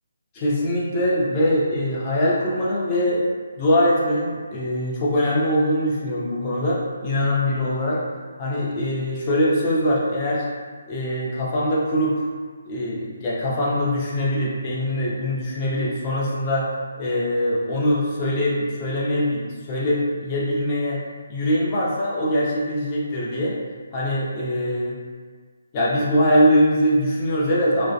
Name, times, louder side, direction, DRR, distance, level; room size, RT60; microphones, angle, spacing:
voice 1, 0.3-3.2 3.6-8.0 8.4-10.5 10.9-12.2 12.7-16.7 17.0-21.0 21.3-23.5 23.9-25.0 25.7-27.9, equal, 30° left, -5 dB, 0.6 m, -22 dB
2.4 x 2.0 x 2.6 m, 1.5 s
figure-of-eight pair, 150°, 0 cm